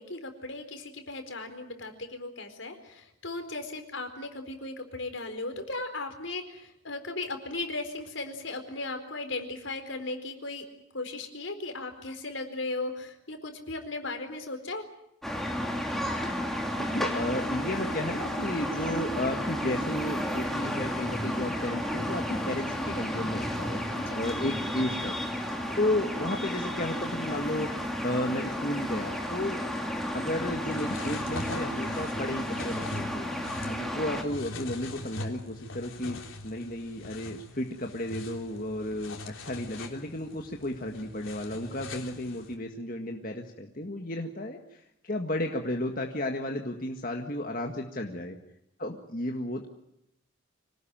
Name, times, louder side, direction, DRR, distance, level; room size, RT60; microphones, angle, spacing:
voice 1, 0.0-10.6 10.9-14.9 23.9-24.1, left 2 dB, 75° left, 7 dB, 4.3 m, -37 dB
sound 1, 15.2-34.2, equal, ahead, 2.9 m, -32 dB
voice 2, 16.8-25.1 25.8-29.6 30.1-33.3 33.7-36.2 36.4-48.4 48.8-49.7, left 1 dB, 45° left, 2 dB, 1.8 m, -33 dB
sound 2, 30.7-42.5, left 2 dB, 90° left, 3.5 m, -42 dB
25.5 x 19.0 x 9.0 m, 0.82 s
head